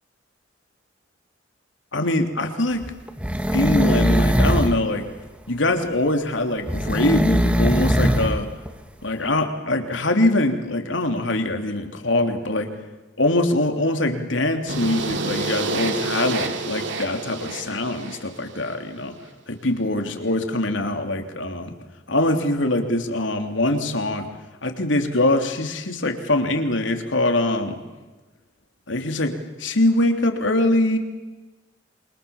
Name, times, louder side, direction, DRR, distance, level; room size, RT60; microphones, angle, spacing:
voice 1, 1.9-2.8 3.5-5.0 5.5-8.5 9.0-12.7 13.2-19.1 19.5-21.7 22.1-24.3 24.6-27.8 28.9-31.0, left 1 dB, 75° left, 6 dB, 3.3 m, -23 dB
sound 1, 2.8-4.8 6.7-8.4 8.7-8.8, equal, 5° right, 1.8 m, -20 dB
sound 2, 14.7-18.7, right 3 dB, 65° right, 2.8 m, -29 dB
28.0 x 26.0 x 7.2 m, 1.2 s
head